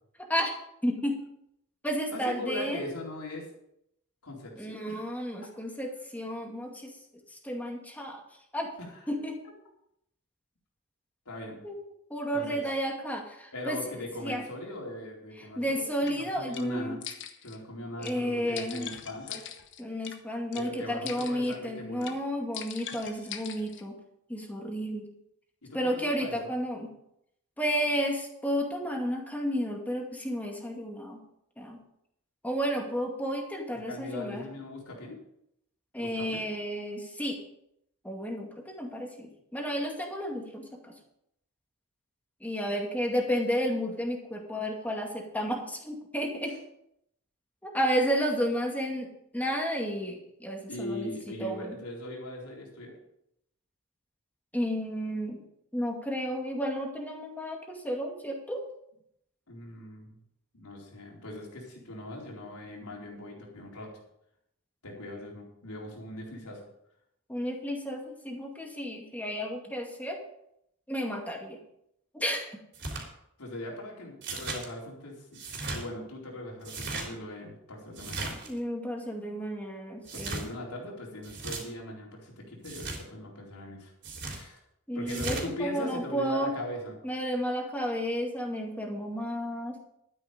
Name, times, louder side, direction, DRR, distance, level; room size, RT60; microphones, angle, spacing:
voice 1, 0.2-0.6 0.8-1.2 1.8-2.8 4.6-6.9 7.4-8.2 8.5-8.7 9.1-9.4 11.6-11.7 12.1-13.8 14.2-14.4 15.6-17.0 18.0-18.9 19.8-24.0 24.3-25.1 25.7-26.9 27.6-31.2 31.6-31.8 32.4-34.4 35.9-37.4 38.0-40.8 42.4-46.5 47.6-49.1 49.3-51.1 51.4-51.8 54.5-55.4 55.7-58.6 67.3-70.2 70.9-71.6 72.1-72.5 78.5-80.5 84.9-86.5 87.0-89.8, equal, 5° left, 1 dB, 2.2 m, -32 dB
voice 2, 2.1-3.5 4.2-5.0 8.8-9.1 9.4-9.5 11.3-11.6 12.3-12.6 13.5-17.0 17.4-19.4 20.5-22.1 25.6-26.5 33.9-35.2 36.0-36.5 46.5-46.6 50.7-53.0 59.5-60.2 60.5-63.9 64.8-66.6 73.4-75.3 75.7-78.4 80.1-83.9 84.3-84.6 84.9-86.9, left 1 dB, 80° left, -2 dB, 4.2 m, -40 dB
sound 1, 16.1-16.2 16.5-16.7 17.0-17.6 18.0-18.2 18.6-20.2 20.5-20.7 21.1-21.6 22.0-22.2 22.5-23.8, left 8 dB, 55° left, 1.2 m, -42 dB
sound 2, 72.7-73.0 74.2-74.6 75.3-75.8 76.6-77.1 77.9-78.5 80.0-80.5 81.2-81.6 82.6-83.0 84.0-84.4 85.1-85.5, right 3 dB, 55° right, 3.7 m, -36 dB
12.5 x 9.9 x 5.2 m, 0.77 s
head